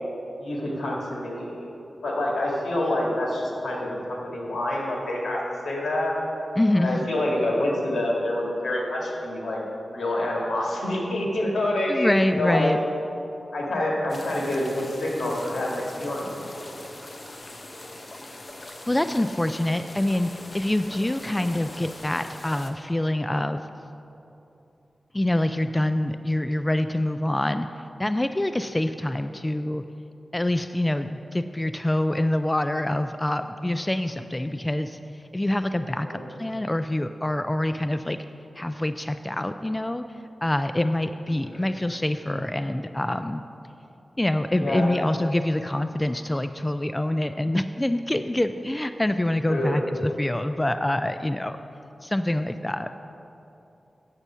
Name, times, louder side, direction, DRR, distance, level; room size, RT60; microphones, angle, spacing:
voice 1, 0.4-1.7 2.0-6.2 6.8-9.6 9.9-12.7 13.5-16.8 36.1-36.3 41.4-41.7 44.6-44.8 49.5-49.8, left 1 dB, 85° left, -3 dB, 1.8 m, -27 dB
voice 2, 6.6-7.0 11.9-12.8 18.9-23.6 25.1-27.7 28.0-29.8 30.3-35.0 35.3-38.2 38.5-40.0 40.4-43.4 44.2-51.6 52.0-52.9, left 1 dB, 20° left, 10 dB, 0.3 m, -25 dB
sound 1, 14.1-22.7, left 1 dB, 45° left, 0.9 m, -42 dB
8.1 x 7.1 x 5.5 m, 2.9 s
cardioid pair, 55°, 0 cm